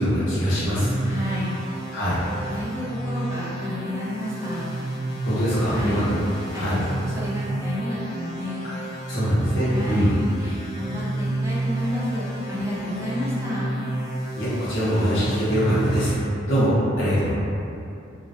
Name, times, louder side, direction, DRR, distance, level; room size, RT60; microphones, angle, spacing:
voice 1, 0.0-0.9 1.9-2.2 5.2-6.1 6.6-6.8 9.1-10.1 14.4-16.1 16.5-17.3, equal, 80° left, -10 dB, 0.8 m, -23 dB
sound 1, 0.8-16.1, right 2 dB, 50° left, 0.9 m, -30 dB
voice 2, 1.0-1.6 2.2-4.7 5.7-6.1 6.5-8.7 9.7-13.7, left 1 dB, 15° right, -8 dB, 0.5 m, -31 dB
2.2 x 2.1 x 2.6 m, 2.6 s
head